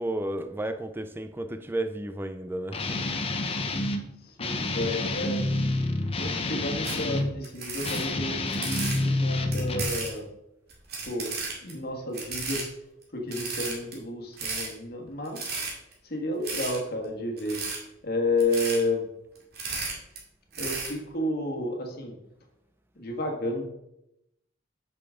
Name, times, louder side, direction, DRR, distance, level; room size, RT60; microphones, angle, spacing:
voice 1, 0.0-3.1, right 1 dB, 10° right, 0.5 m, -32 dB
Guitar, 2.7-4.0 4.4-7.3 7.8-10.0, left 2 dB, 30° left, 0.7 m, -28 dB
voice 2, 4.2-5.4 6.1-10.3 11.1-11.3 11.6-12.7 13.1-15.5 16.0-17.6 18.0-19.1 20.6-22.2 22.9-23.6, left 2 dB, 50° left, 1.5 m, -31 dB
sound 1, 6.8-7.0 7.4-9.0 9.5-10.2 10.7-11.7 12.1-12.6 13.0-13.1 13.3-13.9 14.3-14.7 15.3-15.9 16.4-16.8 17.4-17.8 18.4-18.8 19.4-20.2 20.5-20.9, right 4 dB, 55° right, 2.2 m, -33 dB
8.4 x 6.0 x 3.7 m
head